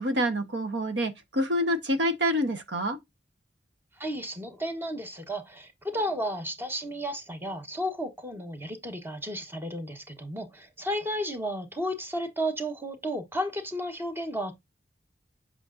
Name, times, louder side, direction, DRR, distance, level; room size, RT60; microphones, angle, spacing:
voice 1, 0.0-3.0, equal, 70° right, 1.1 m, -27 dB
voice 2, 4.0-14.6, equal, 15° right, 1.1 m, -33 dB
8.1 x 6.1 x 2.5 m
head